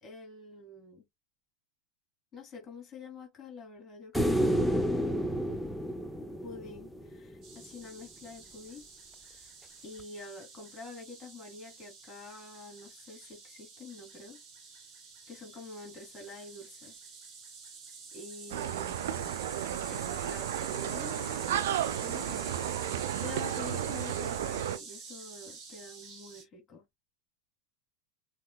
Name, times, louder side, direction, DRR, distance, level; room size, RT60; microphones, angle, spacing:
voice 1, 0.0-1.0 2.3-4.9 6.4-8.9 9.3-9.5 9.8-14.4 15.3-17.0 18.1-19.3 19.9-26.8, left 3 dB, 20° left, 2.8 m, -47 dB
sound 1, 4.1-7.4 10.0-10.1, equal, ahead, 0.6 m, -30 dB
sound 2, 7.4-26.4, right 5 dB, 30° right, 1.9 m, -46 dB
sound 3, 18.5-24.8, right 10 dB, 55° right, 0.5 m, -33 dB
6.6 x 2.5 x 2.3 m
figure-of-eight pair, 90°, 0 cm